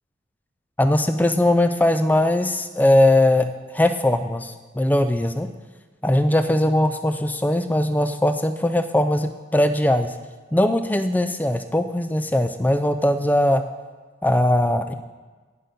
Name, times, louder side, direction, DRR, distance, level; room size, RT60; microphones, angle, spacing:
voice 1, 0.8-5.5 6.0-10.1 10.5-13.6 14.2-14.9, left 1 dB, 10° left, 9 dB, 0.3 m, -20 dB
9.0 x 6.6 x 5.2 m, 1.4 s
head